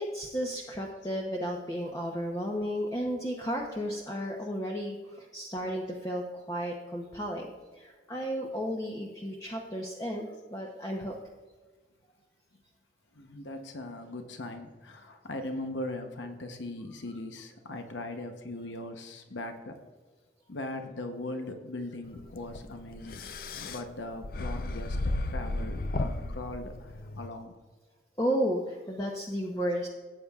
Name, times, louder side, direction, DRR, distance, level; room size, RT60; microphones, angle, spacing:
voice 1, 0.0-11.2 28.2-29.9, equal, 20° left, -1 dB, 0.7 m, -33 dB
voice 2, 13.1-19.8 20.5-27.5, left 2 dB, 80° left, 6 dB, 0.8 m, -40 dB
sound 1, 22.1-27.3, left 2 dB, 50° left, 0.5 m, -34 dB
18.0 x 8.6 x 2.4 m, 1.4 s
head